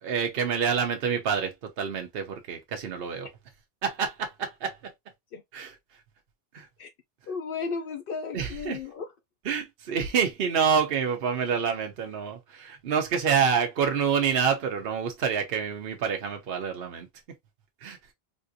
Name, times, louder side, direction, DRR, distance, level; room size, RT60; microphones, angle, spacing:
voice 1, 0.0-3.3 3.8-4.9 5.5-5.8 6.5-6.7 8.3-8.8 9.4-17.1 17.8-18.0, right 6 dB, 70° right, 0.9 m, -27 dB
voice 2, 7.3-9.1, left 5 dB, 65° left, 0.7 m, -34 dB
3.6 x 2.5 x 2.6 m
omnidirectional pair, 1.0 m